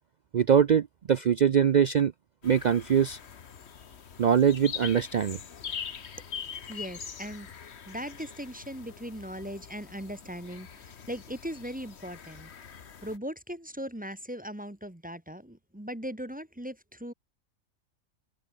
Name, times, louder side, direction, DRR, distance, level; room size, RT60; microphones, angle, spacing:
voice 1, 0.3-2.1 2.4-3.2 4.2-5.4, right 8 dB, 75° right, 0.4 m, -23 dB
sound 1, 2.4-13.2, left 7 dB, 55° left, 1.4 m, -43 dB
voice 2, 6.7-12.5 13.0-17.1, equal, 5° right, 1.3 m, -39 dB
open air
omnidirectional pair, 1.4 m